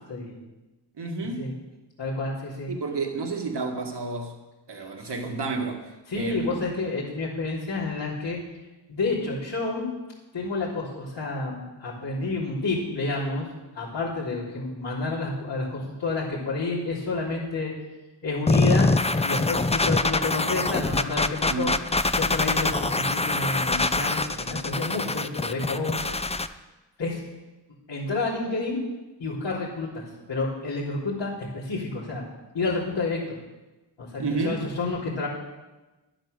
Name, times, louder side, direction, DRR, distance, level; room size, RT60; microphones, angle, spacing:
voice 1, 0.9-1.5 2.7-4.4 4.7-6.6 21.5-21.7 34.2-34.7, right 3 dB, 65° right, 3 dB, 1.9 m, -30 dB
voice 2, 2.0-2.7 5.0-5.1 6.1-8.4 8.9-9.9 10.3-13.5 13.7-17.7 18.2-18.9 19.2-21.7 22.1-26.0 27.0-27.2 27.9-28.8 29.2-32.2 32.5-33.2 34.0-35.3, left 3 dB, 75° left, -10 dB, 3.7 m, -29 dB
sound 1, 18.5-26.5, left 2 dB, 15° left, 0.6 m, -24 dB
11.0 x 8.9 x 6.7 m, 1.1 s
cardioid pair, 50°, 44 cm